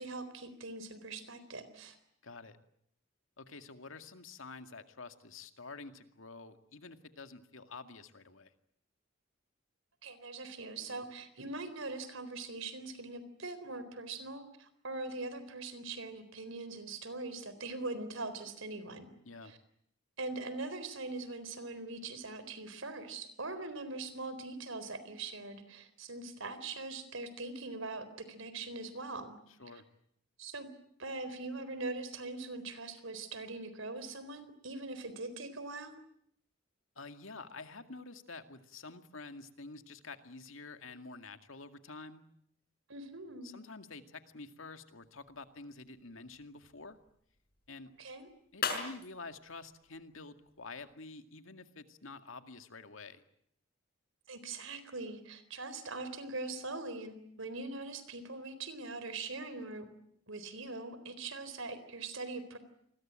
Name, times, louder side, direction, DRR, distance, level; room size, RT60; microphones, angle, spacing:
voice 1, 0.0-2.0 10.0-19.1 19.5-19.6 20.2-29.4 30.4-30.7 31.0-36.0 42.9-43.5 48.0-48.3 54.3-59.9 60.3-62.6, right 3 dB, 80° right, 13 dB, 4.0 m, -42 dB
voice 2, 2.2-2.6 3.4-8.5 19.2-19.5 29.6-29.8 37.0-42.2 43.4-47.0 47.7-47.9 48.5-53.2, left 3 dB, 80° left, 8 dB, 2.2 m, -49 dB
sound 1, 45.0-50.9, left 6 dB, 50° left, 4.8 m, -44 dB
28.5 x 21.5 x 9.0 m, 0.71 s
head